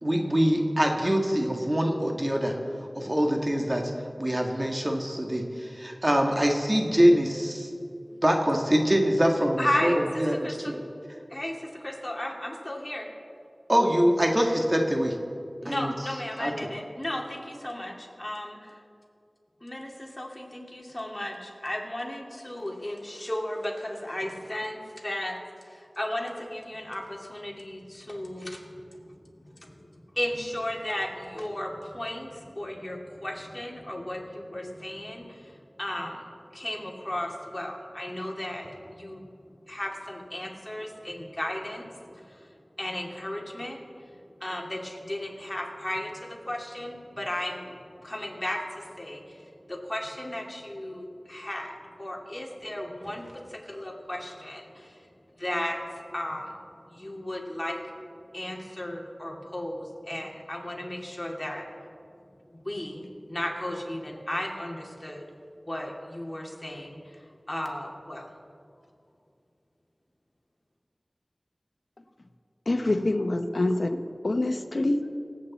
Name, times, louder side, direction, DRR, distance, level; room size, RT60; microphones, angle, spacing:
voice 1, 0.0-2.5 2.8-3.9 4.2-7.7 8.2-10.8 13.7-15.2 15.7-15.9 16.4-16.5, equal, 35° right, 2 dB, 1.7 m, -24 dB
voice 2, 9.6-10.7 11.3-13.1 15.6-18.8 19.6-25.4 25.6-29.9 30.1-39.2 39.7-41.9 42.1-42.5 42.8-44.2 44.4-55.1 55.4-56.5 56.9-57.8 58.3-61.7 62.5-63.0 63.3-65.2 65.6-68.3, left 1 dB, 30° left, 0 dB, 2.4 m, -35 dB
voice 3, 72.7-74.0 74.2-75.2, left 2 dB, 75° left, 7 dB, 0.9 m, -26 dB
25.0 x 8.5 x 4.2 m, 2.5 s
wide cardioid pair, 45°, 0 cm